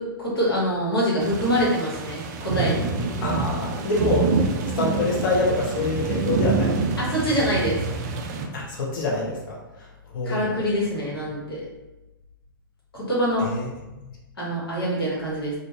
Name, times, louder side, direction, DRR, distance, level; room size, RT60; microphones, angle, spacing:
voice 1, 0.0-2.8 7.0-7.8 10.2-11.7 12.9-13.5 14.4-15.5, equal, 90° left, -6 dB, 1.1 m, -25 dB
sound 1, 1.2-8.5, right 4 dB, 50° right, 0.3 m, -26 dB
voice 2, 3.2-4.3 4.6-6.8 8.5-10.6 13.4-13.7 14.0-14.1, left 2 dB, 60° left, -2 dB, 0.7 m, -26 dB
2.5 x 2.0 x 2.6 m, 1.0 s
hypercardioid pair, 115°, 12 cm